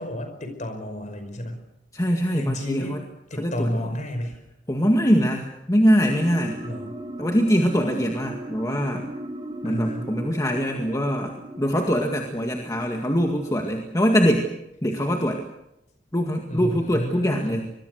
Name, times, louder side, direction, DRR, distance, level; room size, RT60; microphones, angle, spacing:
voice 1, 0.0-1.7 2.3-3.0 3.3-4.4 6.6-7.0 9.6-10.1 16.5-17.7, equal, 40° left, 7 dB, 5.2 m, -31 dB
voice 2, 1.9-3.0 3.4-3.8 4.7-6.6 7.2-9.0 9.6-14.5 14.8-15.4 16.1-17.6, equal, 20° left, 2 dB, 2.0 m, -23 dB
sound 1, 6.0-14.5, right 1 dB, 30° right, 3.0 m, -38 dB
25.5 x 22.0 x 6.6 m, 0.86 s
head